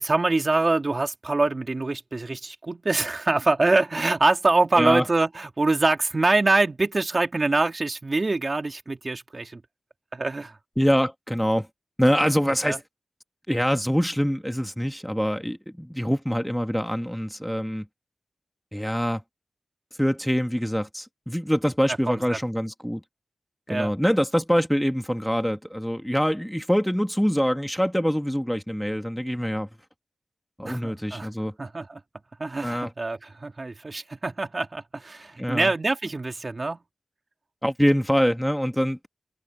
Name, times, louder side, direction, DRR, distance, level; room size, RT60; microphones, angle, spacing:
voice 1, 0.0-9.6 10.1-10.5 12.2-12.3 12.6-12.8 22.1-22.4 23.7-23.9 30.6-31.3 31.6-32.0 32.4-36.8, right 3 dB, 50° right, 2.8 m, -24 dB
voice 2, 10.8-11.7 12.0-12.8 13.5-17.9 18.7-19.2 20.0-23.0 23.7-29.7 30.6-31.5 32.6-32.9 35.4-35.7 37.6-39.1, equal, ahead, 2.1 m, -24 dB
cardioid pair, 45°, 0 cm